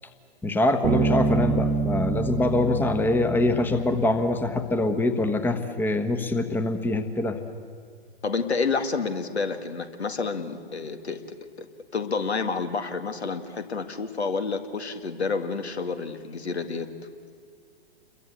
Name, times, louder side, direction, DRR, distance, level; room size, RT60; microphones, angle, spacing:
voice 1, 0.4-7.4, left 2 dB, 5° left, 9 dB, 1.1 m, -24 dB
Bass guitar, 0.8-4.4, right 5 dB, 25° right, 1.5 m, -27 dB
voice 2, 8.2-11.2 11.6-11.7 11.9-16.9, left 4 dB, 80° left, 8 dB, 2.1 m, -29 dB
28.0 x 22.5 x 8.1 m, 2.2 s
figure-of-eight pair, 115°, 32 cm